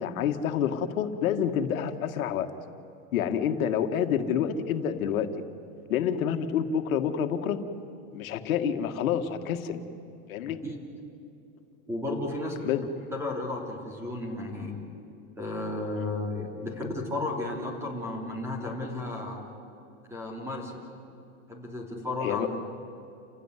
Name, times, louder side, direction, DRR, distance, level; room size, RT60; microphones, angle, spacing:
voice 1, 0.0-2.5 3.1-5.3 5.9-7.6 8.1-9.9 10.3-10.6 12.6-12.8 22.2-22.5, left 8 dB, 85° left, 7 dB, 1.8 m, -28 dB
voice 2, 11.9-12.7 13.1-14.8 15.4-19.5 20.1-20.8 21.5-22.5, left 2 dB, 5° right, 0 dB, 3.2 m, -33 dB
29.0 x 16.5 x 9.8 m, 2.8 s
supercardioid pair, 165°, 41 cm